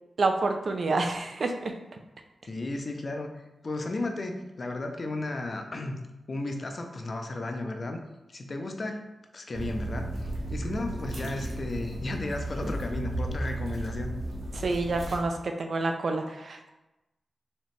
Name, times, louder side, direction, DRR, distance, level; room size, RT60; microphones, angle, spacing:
voice 1, 0.2-1.7 14.6-16.7, right 3 dB, 60° right, 4 dB, 0.5 m, -28 dB
voice 2, 2.5-3.3 3.6-6.0 6.3-8.0 8.3-9.0 9.3-14.1, left 2 dB, 40° left, 4 dB, 0.5 m, -34 dB
sound 1, 9.5-15.2, right 1 dB, 80° right, 0.8 m, -34 dB
4.3 x 3.0 x 3.1 m, 1.0 s
wide cardioid pair, 140°, 0 cm